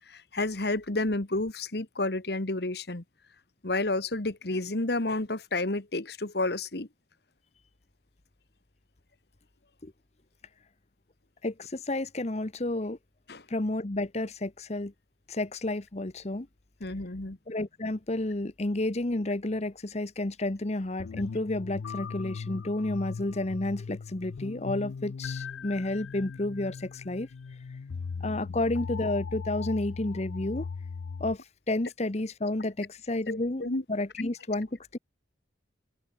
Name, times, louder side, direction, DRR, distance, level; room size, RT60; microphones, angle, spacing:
voice 1, 0.1-3.0 3.6-6.9 13.3-13.4 16.8-17.4 33.3-33.8, left 2 dB, 60° left, 1.6 m, -30 dB
voice 2, 11.4-13.0 13.5-14.9 15.3-16.5 17.5-27.3 28.2-30.7 31.2-35.0, left 2 dB, 35° left, 1.0 m, -31 dB
sound 1, 21.0-31.3, left 5 dB, 85° left, 0.4 m, -38 dB
open air
head